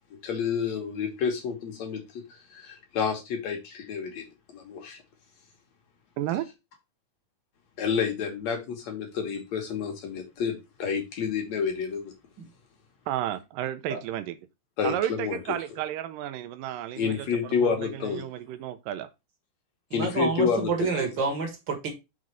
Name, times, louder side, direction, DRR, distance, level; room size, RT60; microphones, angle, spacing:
voice 1, 0.2-2.2 2.5-4.3 4.5-5.0 7.8-12.1 14.8-15.4 17.0-18.2 19.9-21.1, left 6 dB, 55° left, 2.2 m, -29 dB
voice 2, 6.2-6.5 13.1-14.4 14.8-19.1, right 12 dB, 80° right, 2.0 m, -32 dB
voice 3, 19.9-21.9, right 4 dB, 45° right, 1.6 m, -28 dB
6.4 x 4.0 x 6.1 m
omnidirectional pair, 4.5 m